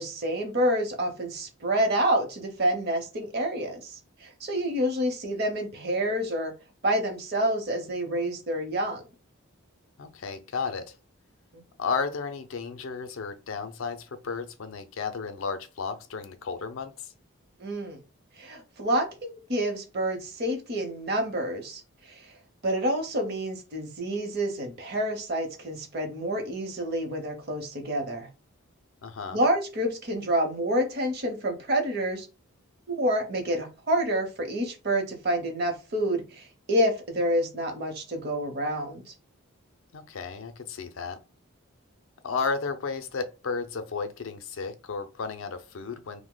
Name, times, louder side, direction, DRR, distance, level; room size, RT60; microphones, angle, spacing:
voice 1, 0.0-6.5 6.8-9.0 11.5-11.6 17.6-18.0 18.4-22.3 22.6-28.3 29.3-32.3 32.9-39.0, right 1 dB, 45° right, 0.8 m, -28 dB
voice 2, 10.0-11.0 11.8-17.1 29.0-29.4 39.9-41.2 42.2-46.2, left 5 dB, 70° left, 0.4 m, -33 dB
2.7 x 2.1 x 3.7 m
head